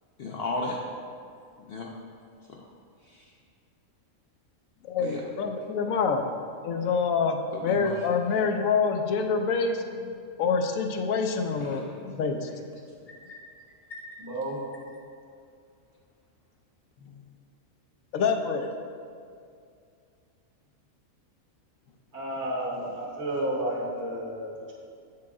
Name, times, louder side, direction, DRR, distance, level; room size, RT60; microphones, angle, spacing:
voice 1, 0.2-0.8 1.6-1.9 2.5-2.6 3.1-3.3 5.0-5.2 7.5-8.1 11.5-11.8 13.3-13.4 13.9-14.2, left 3 dB, 65° left, -1 dB, 0.6 m, -35 dB
voice 2, 4.8-6.3 6.6-9.8 10.4-12.5 18.1-18.7, left 5 dB, 80° left, 5 dB, 1.0 m, -26 dB
voice 3, 14.2-14.7 22.1-24.7, right 1 dB, 55° right, -4 dB, 1.5 m, -31 dB
7.0 x 4.7 x 3.6 m, 2.3 s
omnidirectional pair, 1.4 m